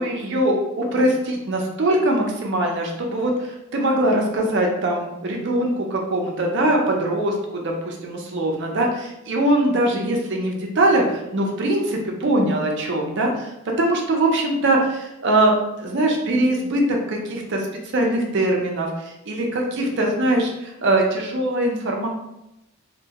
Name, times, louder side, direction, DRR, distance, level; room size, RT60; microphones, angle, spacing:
voice 1, 0.0-13.5 13.8-17.7 17.9-22.1, right 1 dB, 55° right, 0 dB, 0.5 m, -22 dB
2.2 x 2.1 x 2.8 m, 0.89 s
head